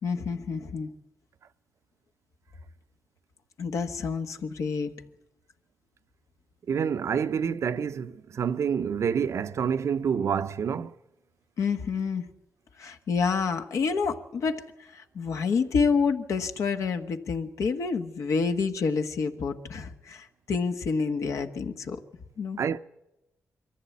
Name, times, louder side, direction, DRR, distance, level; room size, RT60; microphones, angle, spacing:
voice 1, 0.0-0.9 3.6-5.0 11.6-12.3 12.8-22.0 22.4-22.6, left 5 dB, 80° left, 1.3 m, -28 dB
voice 2, 6.7-10.9 22.6-22.8, right 7 dB, 65° right, 0.6 m, -27 dB
22.5 x 14.5 x 8.4 m
cardioid pair, 85°, 5 cm